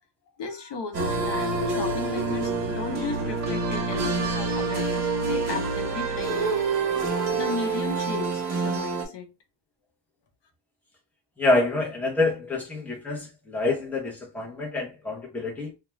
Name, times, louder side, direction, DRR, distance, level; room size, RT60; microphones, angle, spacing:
voice 1, 0.4-6.5 7.3-9.3, left 4 dB, 65° left, 0.8 m, -35 dB
sound 1, 0.9-9.0, right 3 dB, 35° right, 0.9 m, -27 dB
voice 2, 11.4-15.7, left 2 dB, 5° left, 0.7 m, -27 dB
2.3 x 2.2 x 3.1 m
cardioid pair, 155°, 46 cm